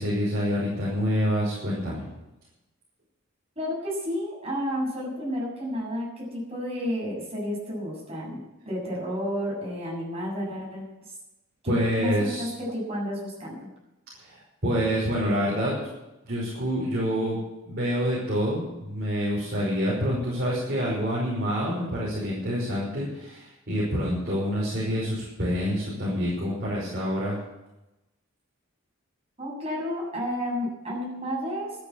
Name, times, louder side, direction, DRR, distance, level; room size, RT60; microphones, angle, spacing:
voice 1, 0.0-2.1 11.7-12.5 14.2-15.9 16.3-17.3 17.7-27.4, equal, 50° right, -7 dB, 5.6 m, -27 dB
voice 2, 3.6-10.8 11.6-12.1 12.4-13.7 29.4-31.8, equal, 30° right, -3 dB, 7.5 m, -31 dB
13.0 x 10.0 x 8.7 m, 0.98 s
head